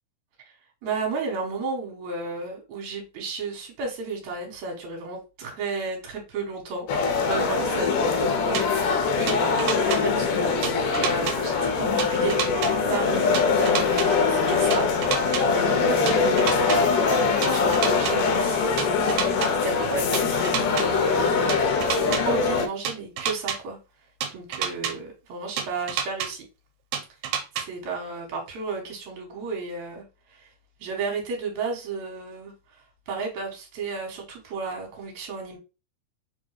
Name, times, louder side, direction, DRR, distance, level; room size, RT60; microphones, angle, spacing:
voice 1, 0.8-12.4 12.9-19.1 19.6-21.5 21.9-23.8 24.3-26.5 27.6-30.0 30.3-30.5 30.8-35.6, right 4 dB, 65° right, 0 dB, 2.2 m, -33 dB
sound 1, 6.9-22.7, left 5 dB, 85° left, 1.6 m, -23 dB
sound 2, 8.5-8.6 9.3-10.0 10.6-11.4 12.0-12.7 13.3-14.1 14.7-15.4 16.1-16.8 17.4-18.1 18.8-19.5 20.1-20.9 21.5-22.2 22.8-23.6 24.2-24.9 25.6-26.3 26.9-27.6, right 8 dB, 90° right, 2.3 m, -28 dB
5.2 x 2.2 x 3.1 m, 0.30 s
omnidirectional pair, 3.9 m